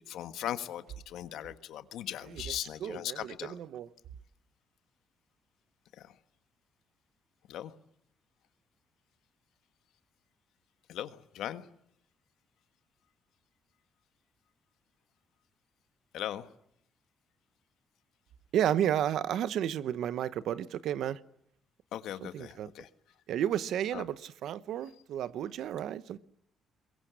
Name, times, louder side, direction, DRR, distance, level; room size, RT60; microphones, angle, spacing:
voice 1, 0.0-3.6 6.0-6.1 7.5-7.7 10.9-11.7 16.1-16.5 21.9-22.9 23.9-24.0, left 11 dB, 80° left, 1.5 m, -39 dB
voice 2, 2.3-3.9 18.5-21.2 22.2-22.7 23.3-26.2, right 10 dB, 70° right, 1.0 m, -32 dB
22.5 x 22.0 x 8.2 m
cardioid pair, 130°, 0 cm